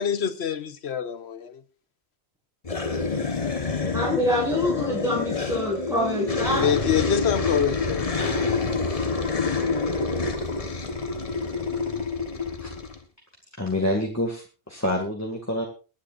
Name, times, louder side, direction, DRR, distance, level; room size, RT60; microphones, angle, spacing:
voice 1, 0.0-1.6 6.6-8.1, left 7 dB, 75° left, 1.2 m, -26 dB
sound 1, 2.6-13.0, left 4 dB, 35° left, 1.3 m, -27 dB
voice 2, 2.9-3.9 12.6-12.7 13.6-15.6, left 1 dB, 15° left, 2.0 m, -29 dB
voice 3, 3.9-6.7, left 1 dB, 5° right, 7.6 m, -25 dB
23.5 x 10.0 x 2.5 m
omnidirectional pair, 1.1 m